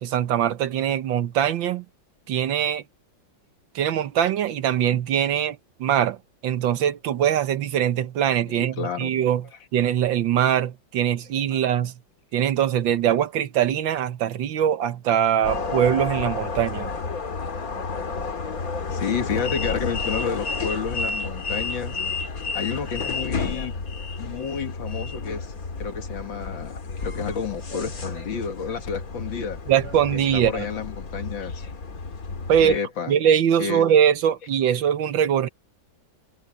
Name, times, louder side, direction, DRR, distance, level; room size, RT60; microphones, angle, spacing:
voice 1, 0.0-1.8 2.3-2.8 3.7-6.2 6.4-9.4 9.7-12.0 12.3-16.9 29.7-30.6 32.5-32.7 33.1-35.5, right 9 dB, 90° right, 1.7 m, -22 dB
voice 2, 8.5-9.1 11.5-11.6 18.9-22.0 22.5-23.7 24.2-25.5 25.8-29.6 30.3-31.7 32.6-33.1 33.6-33.8, left 6 dB, 90° left, 2.5 m, -30 dB
sound 1, 15.4-32.8, left 4 dB, 50° left, 2.5 m, -31 dB
omnidirectional pair, 2.0 m